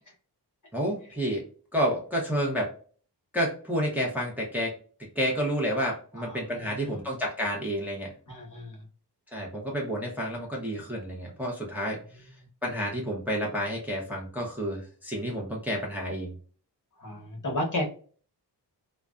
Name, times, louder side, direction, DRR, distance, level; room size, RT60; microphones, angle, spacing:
voice 1, 0.7-1.4 1.7-2.7 3.3-4.7 5.2-8.1 9.3-12.2 12.6-16.3, equal, 5° right, -3 dB, 0.6 m, -30 dB
voice 2, 6.2-7.0 8.3-8.8 17.0-17.9, left 1 dB, 50° left, -1 dB, 1.0 m, -33 dB
2.4 x 2.2 x 2.3 m, 0.42 s
wide cardioid pair, 130°, 41 cm